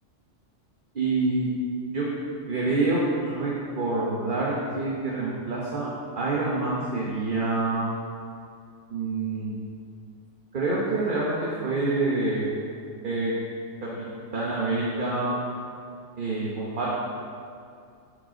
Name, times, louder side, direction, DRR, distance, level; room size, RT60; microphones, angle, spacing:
voice 1, 0.9-1.5 1.9-2.0 2.5-5.9 6.2-7.9 8.9-9.6 10.5-12.5 13.0-13.3 14.3-15.3 16.2-16.9, right 3 dB, 45° right, -6 dB, 1.1 m, -26 dB
10.0 x 4.9 x 3.9 m, 2.3 s
omnidirectional pair, 1.3 m